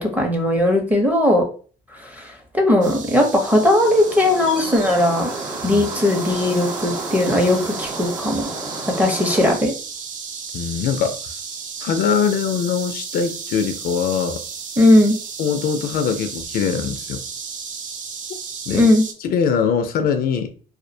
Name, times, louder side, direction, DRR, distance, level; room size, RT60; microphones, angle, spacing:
voice 1, 0.0-1.4 2.0-5.3 5.6-8.5 9.0-9.7 14.8-15.2 18.7-19.0, left 1 dB, 10° right, 0.6 m, -18 dB
sound 1, 2.8-19.1, right 5 dB, 50° right, 0.5 m, -34 dB
sound 2, 3.3-9.5, right 2 dB, 30° right, 0.9 m, -32 dB
voice 2, 10.5-11.3 11.8-14.4 15.4-17.2 18.3-18.4 18.7-18.8 19.2-20.5, left 6 dB, 65° left, 0.4 m, -22 dB
2.3 x 2.1 x 2.6 m
cardioid pair, 110°, 17 cm